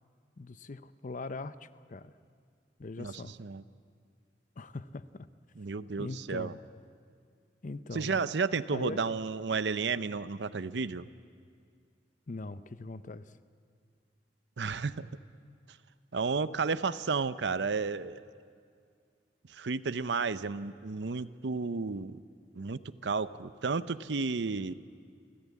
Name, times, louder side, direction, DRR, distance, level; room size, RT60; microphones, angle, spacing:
voice 1, 0.4-2.1 2.8-3.4 4.6-5.3 6.0-6.6 7.6-8.2 8.7-9.0 12.3-13.4, left 3 dB, 45° left, 14 dB, 0.6 m, -41 dB
voice 2, 5.6-6.5 7.9-11.1 14.6-15.1 16.1-18.2 19.5-22.2 22.5-24.7, right 4 dB, 75° right, 14 dB, 0.6 m, -32 dB
29.0 x 14.5 x 8.4 m, 2.2 s
head